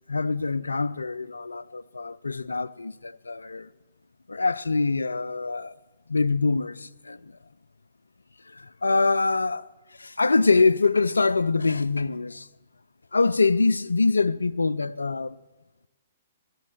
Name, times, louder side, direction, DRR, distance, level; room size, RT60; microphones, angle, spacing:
voice 1, 0.1-3.7 4.3-5.8 6.1-7.3 8.5-9.7 10.0-12.5 13.1-15.4, left 3 dB, 90° left, 0.3 m, -24 dB
16.0 x 6.4 x 7.7 m
figure-of-eight pair, 120°, 0 cm